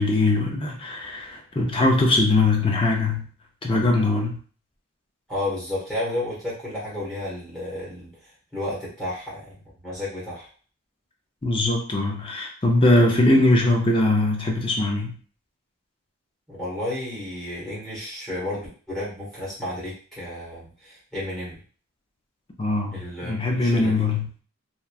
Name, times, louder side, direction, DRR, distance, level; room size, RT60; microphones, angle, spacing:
voice 1, 0.0-3.3 3.6-4.4 11.4-15.2 22.6-24.3, left 2 dB, 25° left, 1 dB, 0.4 m, -21 dB
voice 2, 5.3-8.1 8.5-9.5 9.8-10.5 13.0-13.1 16.5-21.6 22.9-24.0, left 1 dB, 5° left, -7 dB, 1.0 m, -32 dB
2.9 x 2.2 x 2.3 m, 0.41 s
head